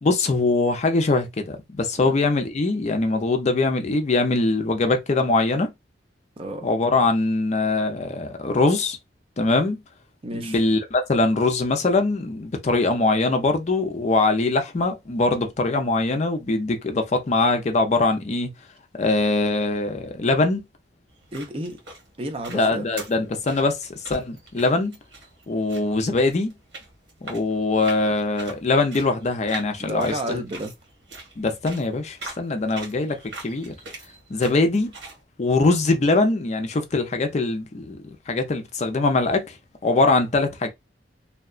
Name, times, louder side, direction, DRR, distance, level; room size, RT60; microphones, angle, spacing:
voice 1, 0.0-5.7 6.6-9.0 9.4-9.8 10.3-18.5 19.0-20.6 22.5-24.9 25.5-26.5 27.2-30.4 31.4-33.7 34.3-34.9 35.4-39.6 39.8-40.7, left 3 dB, 40° left, 0.4 m, -22 dB
voice 2, 6.4-6.7 10.2-10.6 21.3-21.8 22.2-22.9 29.8-30.7, right 1 dB, 30° right, 0.5 m, -31 dB
sound 1, 21.1-35.2, right 3 dB, 75° right, 1.3 m, -43 dB
2.8 x 2.1 x 2.3 m
head